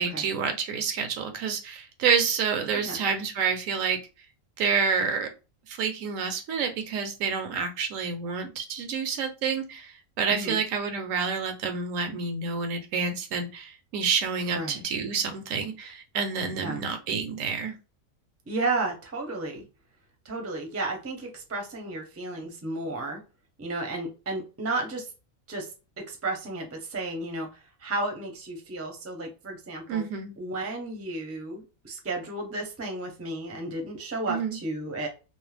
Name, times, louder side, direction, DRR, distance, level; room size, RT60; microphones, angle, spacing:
voice 1, 0.0-4.0 4.6-5.3 5.7-17.8 29.9-30.3 34.3-34.6, right 5 dB, 75° right, 6 dB, 1.0 m, -28 dB
voice 2, 14.5-14.8 16.6-16.8 18.5-19.6 20.2-23.2 23.6-25.1 25.5-25.7 26.1-30.0 30.4-35.1, right 2 dB, 15° right, 2 dB, 0.5 m, -33 dB
2.5 x 2.0 x 3.2 m, 0.31 s
omnidirectional pair, 1.4 m